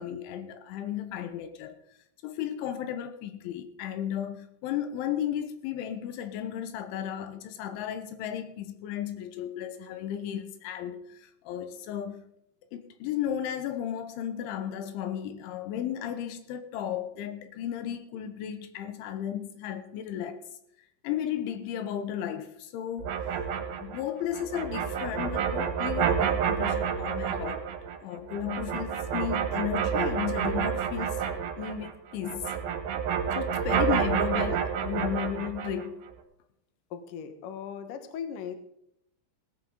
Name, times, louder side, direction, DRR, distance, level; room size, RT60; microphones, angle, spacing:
voice 1, 0.0-1.8 2.2-11.2 11.5-12.2 12.7-20.4 21.0-23.1 23.8-27.7 28.0-31.2 31.6-32.5 33.4-36.1, left 10 dB, 90° left, 3.5 m, -34 dB
sound 1, 23.0-31.9 32.2-35.9, right 7 dB, 65° right, 2.8 m, -29 dB
voice 2, 36.9-38.5, left 7 dB, 65° left, 2.2 m, -38 dB
17.5 x 13.0 x 3.9 m
omnidirectional pair, 5.4 m